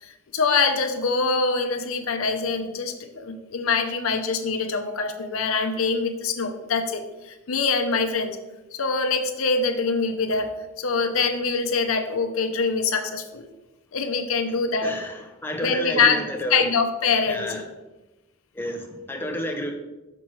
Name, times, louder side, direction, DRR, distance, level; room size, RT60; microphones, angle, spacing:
voice 1, 0.0-8.4 8.7-10.5 10.8-13.5 13.9-15.0 15.6-16.2 16.5-17.6, left 4 dB, 75° left, 6 dB, 0.6 m, -24 dB
voice 2, 14.8-16.7 17.2-17.6 18.5-19.7, equal, 10° left, 3 dB, 0.6 m, -30 dB
6.0 x 5.9 x 3.1 m, 1.1 s
head